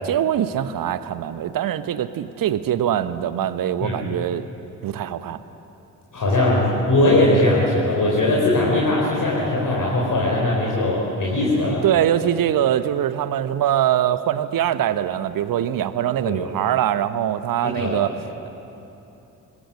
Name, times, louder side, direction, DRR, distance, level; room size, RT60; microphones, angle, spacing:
voice 1, 0.0-4.5 4.8-5.4 11.5-18.1, right 11 dB, 45° right, 14 dB, 1.0 m, -23 dB
voice 2, 6.1-11.8 16.2-16.4 17.6-18.0, left 1 dB, 40° left, -4 dB, 4.4 m, -20 dB
24.0 x 22.0 x 6.5 m, 3.0 s
figure-of-eight pair, 40°, 49 cm